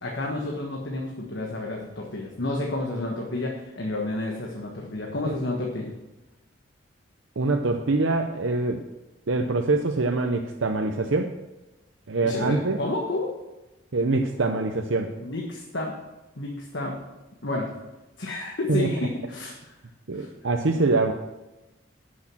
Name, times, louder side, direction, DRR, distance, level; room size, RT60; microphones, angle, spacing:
voice 1, 0.0-5.9 12.2-13.3 15.2-15.9 16.3-17.0 17.4-17.7 18.2-19.7 20.1-20.3, left 2 dB, 65° left, 0 dB, 1.4 m, -30 dB
voice 2, 7.4-8.8 9.3-11.3 12.1-12.8 13.9-15.1 18.7-18.9 20.1-21.1, right 3 dB, 75° right, 4 dB, 0.7 m, -24 dB
11.5 x 6.5 x 6.2 m, 1.0 s
head